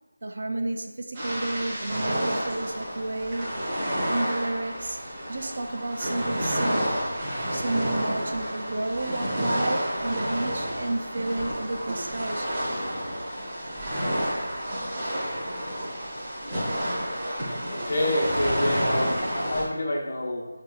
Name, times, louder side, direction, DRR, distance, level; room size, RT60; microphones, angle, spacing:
voice 1, 0.2-5.0 5.3-7.0 7.3-12.9, right 2 dB, 50° right, 0.3 m, -31 dB
sound 1, 1.1-19.6, equal, 20° right, 0.7 m, -30 dB
voice 2, 17.7-20.5, left 1 dB, 50° left, 0.8 m, -28 dB
4.8 x 2.9 x 2.3 m
figure-of-eight pair, 175°, 0 cm